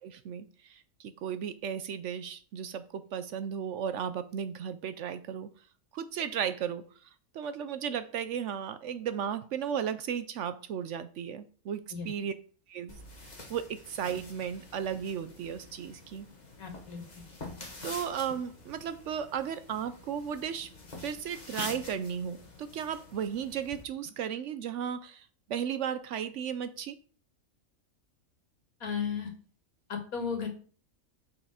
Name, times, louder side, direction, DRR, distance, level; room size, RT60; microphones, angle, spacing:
voice 1, 0.0-5.5 5.9-12.3 12.7-16.3 17.8-20.7 21.0-27.0, right 8 dB, 65° right, 0.8 m, -35 dB
sound 1, 12.9-23.8, left 2 dB, 30° left, 1.5 m, -47 dB
voice 2, 16.6-17.0 28.8-29.3 29.9-30.5, left 6 dB, 75° left, 2.2 m, -34 dB
6.6 x 5.8 x 4.9 m
omnidirectional pair, 1.5 m